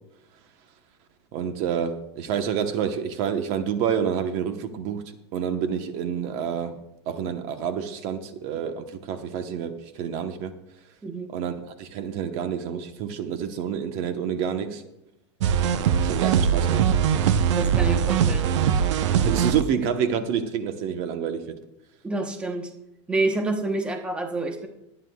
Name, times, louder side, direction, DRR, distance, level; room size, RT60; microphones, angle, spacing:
voice 1, 1.3-5.0 5.3-6.8 7.1-10.5 11.3-11.5 11.8-14.8 16.0-16.9 19.2-21.5, right 8 dB, 45° right, 7 dB, 1.1 m, -28 dB
sound 1, 15.4-19.6, right 8 dB, 75° right, 0.8 m, -21 dB
voice 2, 17.6-18.5 22.0-22.7 23.1-24.7, right 2 dB, 5° right, 3 dB, 1.0 m, -28 dB
22.5 x 9.9 x 2.3 m, 0.87 s
supercardioid pair, 160°, 15 cm